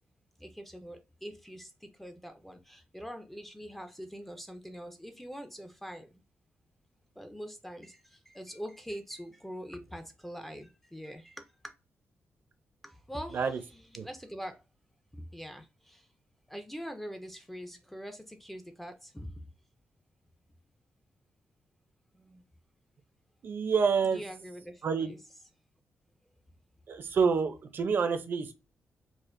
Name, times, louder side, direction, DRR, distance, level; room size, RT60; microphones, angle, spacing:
voice 1, 0.4-6.2 7.2-11.7 12.8-14.6 15.1-16.1 16.5-19.4 22.1-22.4 24.0-25.2, equal, 5° left, 0.4 m, -44 dB
voice 2, 23.4-24.2 24.8-25.1 26.9-28.5, right 5 dB, 50° right, 0.5 m, -28 dB
4.2 x 2.4 x 2.5 m
wide cardioid pair, 165°, 5 cm